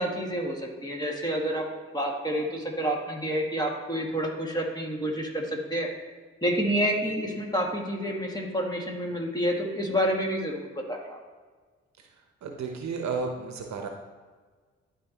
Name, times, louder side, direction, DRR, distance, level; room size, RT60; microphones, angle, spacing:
voice 1, 0.0-5.9 6.4-11.2, equal, 15° left, -1 dB, 2.1 m, -29 dB
voice 2, 12.4-13.9, right 4 dB, 60° right, 4 dB, 1.0 m, -33 dB
12.0 x 4.4 x 3.0 m, 1.4 s
hypercardioid pair, 45°, 31 cm